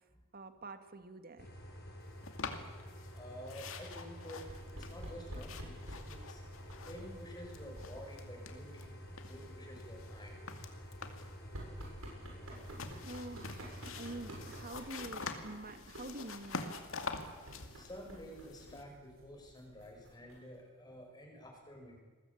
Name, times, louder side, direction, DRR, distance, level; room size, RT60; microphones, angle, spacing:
voice 1, 0.3-1.5 13.0-16.7, right 2 dB, 45° right, 8 dB, 1.9 m, -47 dB
sound 1, 1.4-14.7, equal, 50° left, 7.4 m, -50 dB
sound 2, 2.2-3.2 3.5-7.2 7.5-8.9 9.2-11.4 12.5-18.8, left 4 dB, 70° left, 2.4 m, -46 dB
voice 2, 3.1-6.4 6.8-8.9 9.3-10.4 17.7-22.0, equal, 20° left, 1 dB, 6.6 m, -50 dB
sound 3, 4.4-20.6, right 1 dB, 80° right, 7.9 m, -52 dB
27.5 x 21.5 x 8.7 m, 1.4 s
head